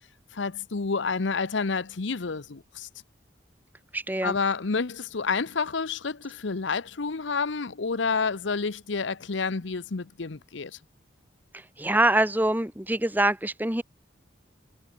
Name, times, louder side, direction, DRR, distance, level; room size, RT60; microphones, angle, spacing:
voice 1, 0.3-2.9 4.2-10.8, left 4 dB, 75° left, 0.8 m, -29 dB
voice 2, 3.9-4.4 11.5-13.8, right 1 dB, 10° right, 1.1 m, -25 dB
head